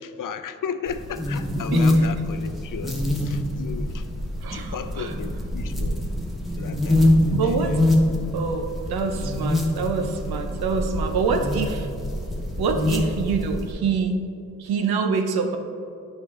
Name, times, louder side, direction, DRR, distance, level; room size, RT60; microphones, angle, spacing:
voice 1, 0.0-4.1 4.5-6.1 6.6-7.8 12.9-13.1, left 6 dB, 60° left, 10 dB, 0.5 m, -35 dB
sound 1, 0.9-13.7, left 1 dB, ahead, 1.3 m, -24 dB
voice 2, 1.6-1.9 4.4-5.1 7.3-7.8 8.3-11.9 12.6-14.2 14.6-15.6, right 5 dB, 80° right, 5 dB, 0.7 m, -26 dB
9.3 x 4.5 x 3.7 m, 2.5 s
cardioid pair, 45°, 37 cm